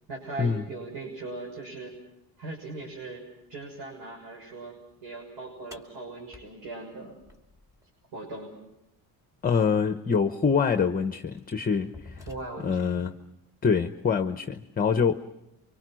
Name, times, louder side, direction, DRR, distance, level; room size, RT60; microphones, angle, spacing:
voice 1, 0.1-1.9 2.4-3.2 3.5-4.7 5.0-7.2 8.1-8.5 12.3-13.0, right 3 dB, 70° right, 0 dB, 6.4 m, -39 dB
sound 1, 5.7-7.9 9.8-9.9 10.7-10.9 11.4-12.9, left 3 dB, 10° right, 2.5 m, -49 dB
voice 2, 9.4-12.3 12.6-13.1 13.6-15.2, left 6 dB, 20° left, 8 dB, 0.9 m, -25 dB
29.0 x 25.0 x 6.3 m, 0.87 s
cardioid pair, 140°, 41 cm